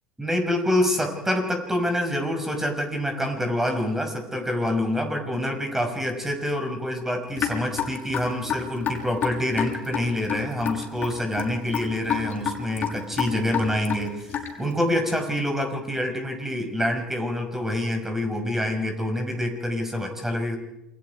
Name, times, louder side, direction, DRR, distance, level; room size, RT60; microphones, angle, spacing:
voice 1, 0.2-20.6, left 1 dB, 10° right, 4 dB, 5.7 m, -26 dB
Raindrop / Drip, 7.4-14.7, left 8 dB, 40° left, 5.9 m, -29 dB
28.0 x 22.5 x 4.7 m, 0.96 s
hypercardioid pair, 75°, 5 cm